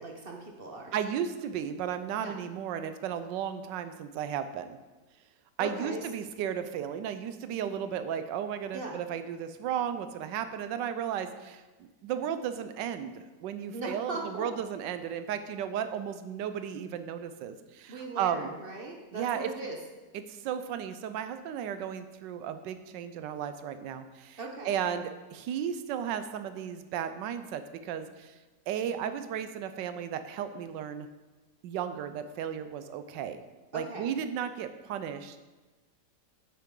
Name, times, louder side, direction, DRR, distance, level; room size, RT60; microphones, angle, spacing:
voice 1, 0.0-0.9 2.2-2.4 5.6-6.0 8.7-9.0 13.7-14.5 17.9-19.8 24.4-24.8 33.7-34.1, right 2 dB, 45° right, 1 dB, 0.8 m, -39 dB
voice 2, 0.9-4.8 5.6-11.6 12.0-18.5 19.1-19.5 20.3-24.4 24.6-28.3 28.7-31.1 31.6-33.4 33.7-35.4, right 8 dB, 80° right, 10 dB, 1.3 m, -34 dB
8.5 x 8.3 x 3.8 m, 1.2 s
omnidirectional pair, 1.9 m